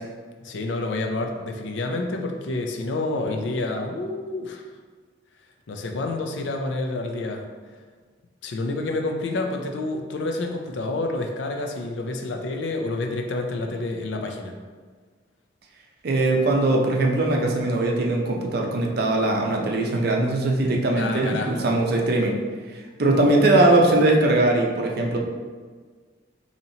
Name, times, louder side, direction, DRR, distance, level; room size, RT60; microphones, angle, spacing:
voice 1, 0.4-4.6 5.7-7.4 8.4-14.6 21.0-21.7, left 2 dB, 75° left, 3 dB, 0.4 m, -28 dB
voice 2, 16.0-22.4 23.0-25.2, right 2 dB, 55° right, 0 dB, 0.5 m, -20 dB
4.1 x 2.8 x 2.7 m, 1.5 s
head